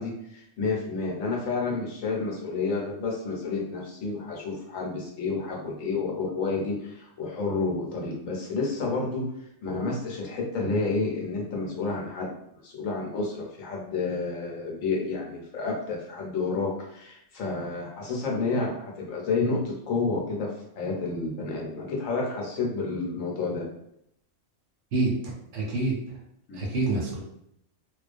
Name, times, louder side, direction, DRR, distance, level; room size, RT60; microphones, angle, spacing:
voice 1, 0.0-9.3 9.6-12.3 12.6-23.7 26.5-26.6, left 3 dB, 80° left, -2 dB, 1.0 m, -30 dB
voice 2, 24.9-26.0 26.5-27.2, right 2 dB, 75° right, -2 dB, 1.0 m, -27 dB
2.3 x 2.1 x 2.4 m, 0.76 s
omnidirectional pair, 1.3 m